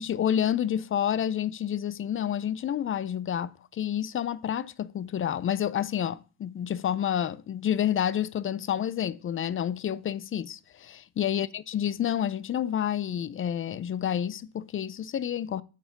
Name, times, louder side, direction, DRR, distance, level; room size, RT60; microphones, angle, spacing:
voice 1, 0.0-15.6, left 9 dB, 30° left, 0.5 m, -29 dB
7.6 x 5.9 x 5.8 m
supercardioid pair, 95°, 46 cm